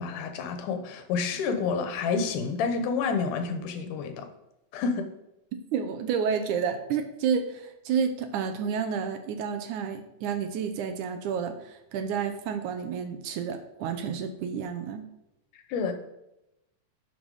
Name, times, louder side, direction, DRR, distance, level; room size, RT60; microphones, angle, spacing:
voice 1, 0.0-4.3 4.7-5.1 15.7-15.9, left 5 dB, 85° left, 7 dB, 2.6 m, -29 dB
voice 2, 5.7-15.1, right 7 dB, 75° right, 7 dB, 2.3 m, -30 dB
11.5 x 5.9 x 4.8 m, 0.89 s
omnidirectional pair, 3.6 m